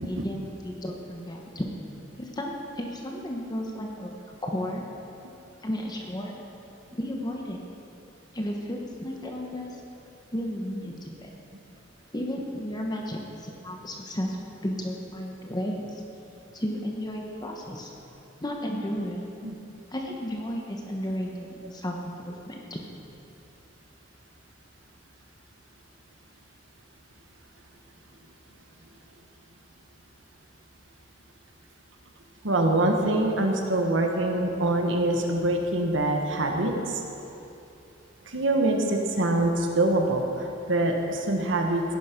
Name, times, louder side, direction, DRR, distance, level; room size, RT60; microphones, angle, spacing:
voice 1, 0.0-1.7 2.2-4.1 4.4-4.9 5.6-6.4 6.9-7.6 8.3-9.8 10.3-11.3 12.1-14.4 14.6-16.0 16.5-17.9 18.4-19.2 19.9-22.8, equal, 20° left, 0 dB, 1.1 m, -33 dB
voice 2, 32.4-37.0 38.3-41.8, right 2 dB, 80° right, 2 dB, 1.4 m, -24 dB
16.5 x 10.5 x 5.2 m, 2.9 s
head